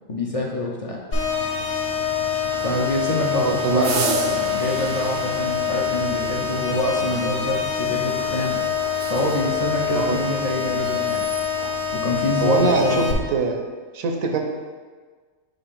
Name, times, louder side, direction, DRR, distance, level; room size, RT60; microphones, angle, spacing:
voice 1, 0.1-1.0 2.6-8.6 9.1-11.2 11.9-13.2, left 1 dB, 40° left, -2 dB, 0.5 m, -26 dB
sound 1, 1.1-13.1, left 7 dB, 70° left, 1.3 m, -25 dB
sound 2, 1.1-12.0, right 5 dB, 60° right, 0.6 m, -34 dB
voice 2, 3.3-4.0 9.9-10.2 12.4-13.0 13.3-13.6 13.9-14.4, right 4 dB, 80° right, 3 dB, 1.2 m, -22 dB
7.6 x 2.6 x 5.0 m, 1.5 s
omnidirectional pair, 1.4 m